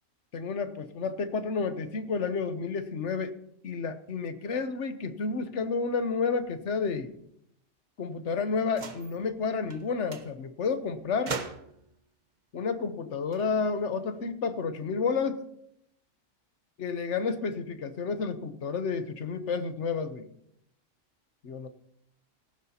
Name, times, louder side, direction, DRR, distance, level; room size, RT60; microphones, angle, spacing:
voice 1, 0.3-3.3 3.6-7.1 8.0-11.3 12.5-15.4 16.8-20.3 21.4-21.7, left 5 dB, 70° left, 10 dB, 1.2 m, -30 dB
sound 1, 8.7-9.2 9.7-9.8 10.1-10.3 11.3-11.9 13.1-14.2, right 4 dB, 40° right, 1.0 m, -39 dB
17.5 x 15.0 x 2.9 m, 0.76 s
omnidirectional pair, 1.3 m